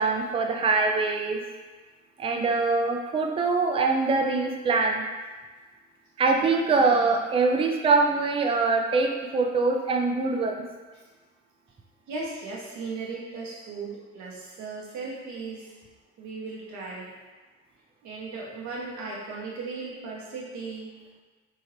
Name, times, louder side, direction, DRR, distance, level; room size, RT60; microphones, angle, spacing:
voice 1, 0.0-1.4 2.2-5.0 6.2-10.6, right 3 dB, 15° right, 2 dB, 0.4 m, -23 dB
voice 2, 6.9-7.2 10.9-11.0 12.1-15.8 16.2-17.1 18.0-20.9, right 4 dB, 50° right, -4 dB, 0.9 m, -37 dB
3.0 x 2.8 x 2.7 m, 1.3 s
figure-of-eight pair, 45°, 36 cm